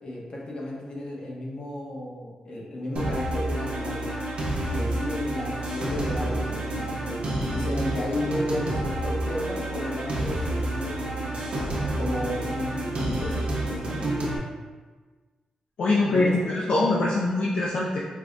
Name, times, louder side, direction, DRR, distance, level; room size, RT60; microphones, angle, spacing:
voice 1, 0.0-4.1 4.7-11.5 12.0-14.1 16.1-16.5, left 1 dB, 50° left, -4 dB, 0.8 m, -33 dB
sound 1, 3.0-14.4, right 1 dB, 65° right, 0.7 m, -29 dB
voice 2, 15.8-18.0, left 2 dB, 65° left, -4 dB, 0.4 m, -23 dB
4.6 x 2.1 x 2.5 m, 1.4 s
wide cardioid pair, 110°, 2 cm